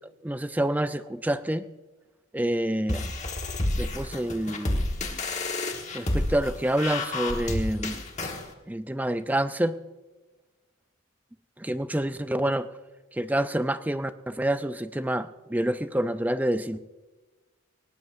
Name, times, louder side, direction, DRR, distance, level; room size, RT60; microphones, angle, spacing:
voice 1, 0.2-1.6 2.3-3.1 3.8-4.9 5.9-7.9 8.7-9.8 11.6-12.7 13.1-16.8, right 1 dB, 10° right, 11 dB, 0.4 m, -27 dB
sound 1, 2.9-8.5, left 2 dB, 35° left, 1.5 m, -30 dB
19.0 x 18.5 x 2.6 m, 1.2 s
head